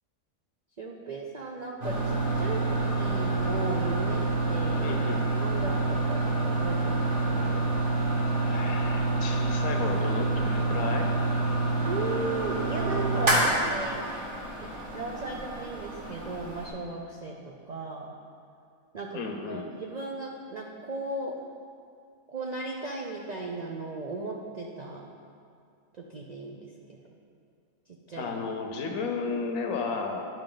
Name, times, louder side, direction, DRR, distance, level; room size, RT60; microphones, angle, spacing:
voice 1, 0.8-4.2 4.5-4.9 5.4-7.7 11.9-14.0 14.6-17.4 17.7-18.2 18.9-19.2 19.5-21.3 22.3-25.1 25.9-26.6 26.9-27.1 27.9-28.3, right 3 dB, 65° right, -1 dB, 0.4 m, -36 dB
sound 1, 1.8-16.7, right 2 dB, 40° right, 1.5 m, -27 dB
voice 2, 4.8-5.2 8.4-11.1 19.1-19.7 28.2-30.2, left 4 dB, 80° left, 3 dB, 1.3 m, -33 dB
10.5 x 5.0 x 3.8 m, 2.3 s
omnidirectional pair, 1.5 m